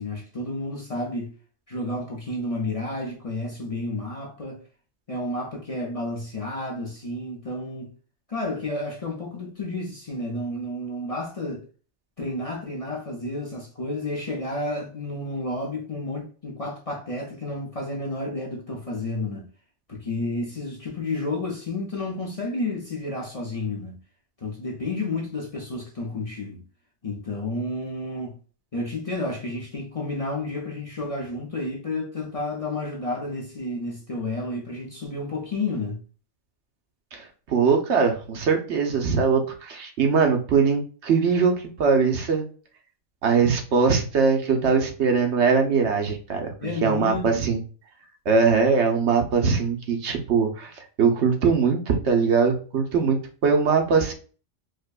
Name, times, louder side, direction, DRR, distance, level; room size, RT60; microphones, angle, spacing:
voice 1, 0.0-1.3 1.7-4.6 5.1-7.9 8.3-11.7 12.2-19.5 19.9-24.0 24.4-26.6 27.0-28.4 28.7-36.0 46.6-47.4, left 2 dB, 35° left, 0.7 m, -31 dB
voice 2, 37.1-42.4 43.2-47.6 48.3-50.7 51.0-54.1, right 5 dB, 65° right, 1.0 m, -21 dB
4.9 x 2.2 x 2.4 m
omnidirectional pair, 1.3 m